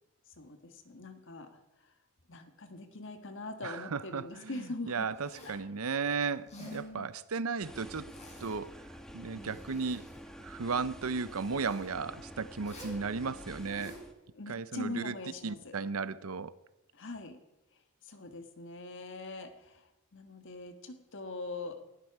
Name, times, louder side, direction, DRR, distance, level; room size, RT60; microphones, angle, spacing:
voice 1, 0.4-1.9 2.3-5.1 5.4-5.6 6.5-7.1 9.3-9.6 14.4-15.8 16.9-17.4 18.0-21.8, left 2 dB, 60° left, 7 dB, 1.6 m, -43 dB
voice 2, 3.6-8.1 8.4-10.1 10.4-14.0 14.5-15.1 15.4-16.5, right 5 dB, 75° right, 16 dB, 0.7 m, -35 dB
Zipper (clothing), 5.1-5.7 6.3-6.9 7.9-8.8 9.2-10.2 11.3-11.9 12.6-13.0 13.5-14.1, left 1 dB, 30° left, 5.7 m, -52 dB
sound 1, 7.6-14.1, equal, 5° left, 1.1 m, -48 dB
18.5 x 12.5 x 4.8 m, 0.96 s
head